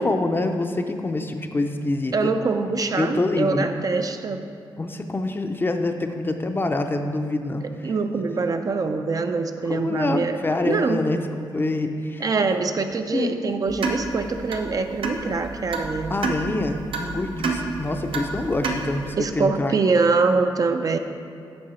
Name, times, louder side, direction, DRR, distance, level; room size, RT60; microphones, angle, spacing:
voice 1, 0.0-2.1 3.0-3.7 4.8-7.6 9.6-12.2 13.1-13.3 16.1-19.8, left 2 dB, 25° left, 6 dB, 0.5 m, -25 dB
voice 2, 2.1-4.4 7.6-10.4 10.6-11.1 12.2-16.2 19.2-21.0, right 4 dB, 45° right, 7 dB, 0.4 m, -24 dB
sound 1, 13.7-19.1, right 3 dB, 85° right, 0.7 m, -30 dB
8.7 x 5.5 x 4.3 m, 2.3 s
cardioid pair, 95°, 9 cm